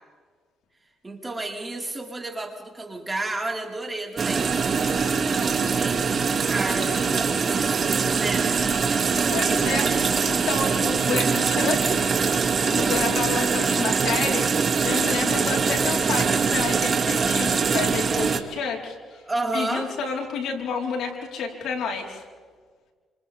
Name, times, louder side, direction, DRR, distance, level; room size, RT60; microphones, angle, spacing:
voice 1, 1.0-8.5 12.8-13.0 19.2-19.9, right 2 dB, 20° right, 0 dB, 4.9 m, -32 dB
sound 1, 4.2-18.4, right 5 dB, 45° right, 2.5 m, -23 dB
voice 2, 9.3-10.0 10.2-12.1 12.6-14.4 14.8-19.0 19.5-22.2, left 5 dB, 80° left, 0 dB, 4.6 m, -29 dB
30.0 x 27.5 x 3.7 m, 1.5 s
cardioid pair, 90°, 0 cm